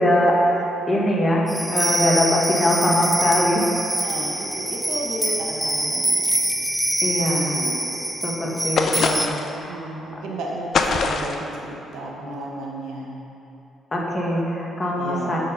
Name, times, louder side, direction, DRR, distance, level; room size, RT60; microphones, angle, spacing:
voice 1, 0.0-3.7 7.0-7.6 8.2-9.9 13.9-15.4, equal, 25° left, -3 dB, 1.5 m, -22 dB
sound 1, 1.5-9.3, right 1 dB, 10° right, 0.4 m, -25 dB
voice 2, 4.0-6.7 7.3-8.1 9.7-13.2 14.9-15.4, right 2 dB, 80° right, -2 dB, 1.3 m, -33 dB
sound 2, 8.8-9.6 10.7-11.5, left 4 dB, 55° left, 0.5 m, -22 dB
8.0 x 4.5 x 5.5 m, 2.9 s
cardioid pair, 90°, 0 cm